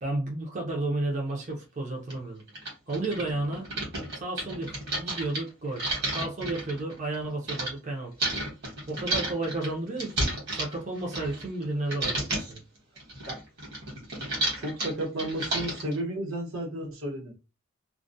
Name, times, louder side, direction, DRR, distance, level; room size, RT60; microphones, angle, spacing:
voice 1, 0.0-2.4 2.9-3.7 4.1-5.9 6.1-8.1 8.9-12.6, right 2 dB, 35° right, 0.5 m, -32 dB
sound 1, 1.4-1.5 2.1-2.2 2.5-7.7 8.2-11.6 11.9-12.6 13.0-16.0, right 1 dB, 50° right, 1.1 m, -32 dB
voice 2, 14.6-17.4, right 1 dB, 85° right, 1.0 m, -33 dB
2.3 x 2.1 x 2.5 m
head